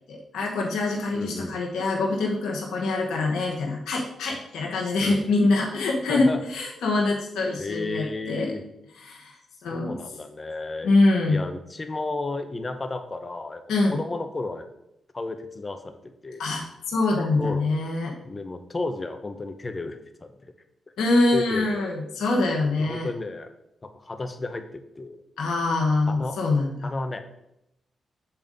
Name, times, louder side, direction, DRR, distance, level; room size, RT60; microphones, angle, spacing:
voice 1, 0.0-8.5 9.0-9.4 9.6-10.0 10.8-11.4 13.7-14.0 16.4-18.1 21.0-23.1 25.4-26.9, left 2 dB, 80° left, -2 dB, 1.0 m, -24 dB
voice 2, 1.1-1.6 5.0-5.2 6.1-6.4 7.6-8.6 9.7-10.9 11.3-13.6 13.9-14.7 15.1-16.5 17.4-17.7 18.2-20.3 21.3-21.8 22.8-23.5 23.8-25.2 26.1-26.4 26.8-27.2, left 2 dB, 35° left, 8 dB, 0.9 m, -33 dB
7.1 x 3.6 x 5.2 m, 0.83 s
supercardioid pair, 55°, 0 cm